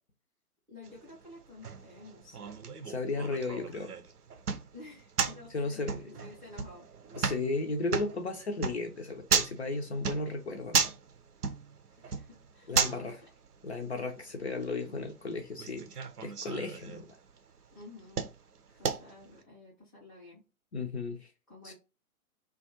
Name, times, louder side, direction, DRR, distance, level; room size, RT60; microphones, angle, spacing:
voice 1, 0.7-2.5 3.5-3.8 4.7-7.3 12.0-13.1 17.7-18.3 18.8-20.4 21.5-21.7, left 2 dB, ahead, 0.6 m, -51 dB
sound 1, 0.8-19.4, right 6 dB, 90° right, 0.6 m, -36 dB
voice 2, 2.9-3.9 5.5-6.0 7.2-10.9 12.7-13.2 13.6-15.9 16.2-17.1 20.7-21.3 21.6-21.7, left 3 dB, 50° left, 0.4 m, -34 dB
2.3 x 2.2 x 2.7 m
figure-of-eight pair, 135°, 44 cm